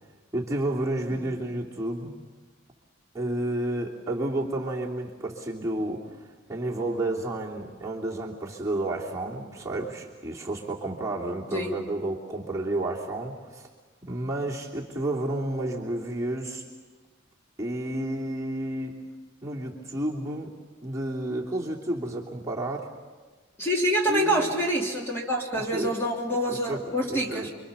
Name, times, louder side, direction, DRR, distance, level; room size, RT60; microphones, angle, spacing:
voice 1, 0.3-2.1 3.1-6.0 6.5-13.7 14.0-16.6 17.6-18.9 19.4-20.5 20.8-22.8 24.1-24.5 25.7-25.9 26.5-26.8 27.1-27.5, right 1 dB, 15° right, -4 dB, 3.1 m, -31 dB
voice 2, 23.6-27.5, equal, 10° left, -1 dB, 3.0 m, -26 dB
30.0 x 24.5 x 7.0 m, 1.4 s
head